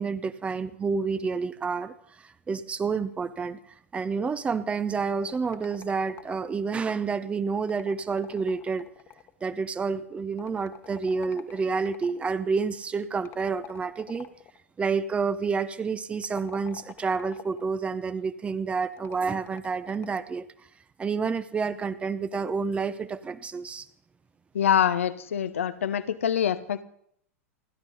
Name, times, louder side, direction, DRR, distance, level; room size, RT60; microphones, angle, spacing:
voice 1, 0.0-1.9 2.2-3.6 3.9-8.9 9.4-14.3 14.8-20.4 21.0-23.9, right 5 dB, 15° right, 14 dB, 0.8 m, -29 dB
sound 1, 5.1-6.7 7.6-9.4 10.4-12.2 13.2-14.6 16.1-17.7 19.0-20.3, left 11 dB, 30° left, 1.4 m, -48 dB
voice 2, 24.5-26.8, left 9 dB, 65° left, 12 dB, 0.9 m, -25 dB
29.5 x 11.5 x 4.1 m, 0.68 s
figure-of-eight pair, 95°, 8 cm